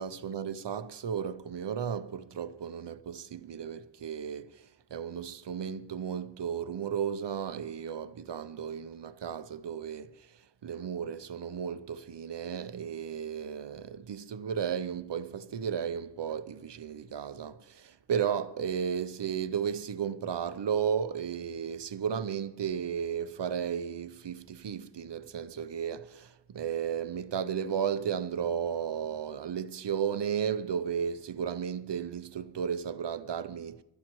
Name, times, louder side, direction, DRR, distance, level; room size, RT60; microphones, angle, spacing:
voice 1, 0.0-33.8, right 7 dB, 75° right, 0.7 m, -34 dB
22.5 x 11.0 x 3.1 m
wide cardioid pair, 50°, 42 cm